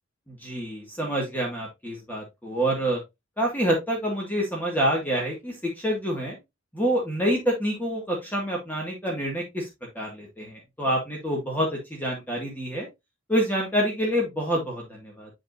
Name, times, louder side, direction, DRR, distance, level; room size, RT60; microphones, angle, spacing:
voice 1, 0.3-3.0 3.4-6.4 6.7-9.7 10.0-12.9 13.3-15.3, equal, 10° left, -1 dB, 1.9 m, -27 dB
8.8 x 5.3 x 2.6 m, 0.21 s
head